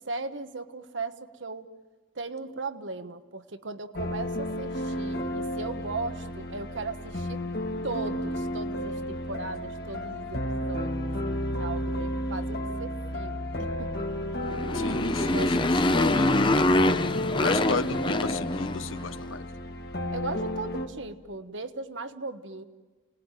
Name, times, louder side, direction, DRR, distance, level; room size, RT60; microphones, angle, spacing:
voice 1, 0.0-1.7 2.1-7.4 7.8-14.1 15.0-16.1 20.1-22.6, right 3 dB, 70° right, 9 dB, 1.3 m, -37 dB
sound 1, 4.0-20.9, left 1 dB, 50° left, 2.1 m, -32 dB
Motorcycle, 14.4-19.1, left 1 dB, 25° left, 0.8 m, -25 dB
voice 2, 14.7-16.3 17.4-19.4, left 4 dB, 90° left, 12 dB, 1.0 m, -34 dB
29.5 x 20.0 x 9.1 m, 1.3 s
head